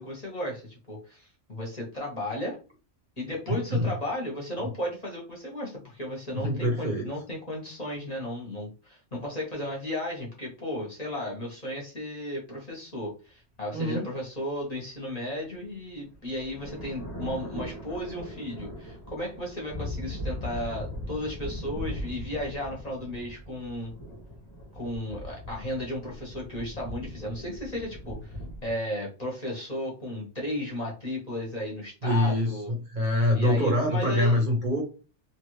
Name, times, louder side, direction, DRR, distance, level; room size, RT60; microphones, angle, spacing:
voice 1, 0.0-2.6 3.2-23.9 24.7-28.4 28.6-32.7 33.3-34.4, left 1 dB, 35° left, -2 dB, 1.0 m, -34 dB
voice 2, 3.5-3.9 6.3-7.1 13.7-14.1 32.0-34.8, left 1 dB, 45° right, 0 dB, 0.8 m, -25 dB
sound 1, 15.6-28.7, left 1 dB, 15° left, 1.3 m, -39 dB
2.9 x 2.5 x 3.1 m, 0.34 s
omnidirectional pair, 1.3 m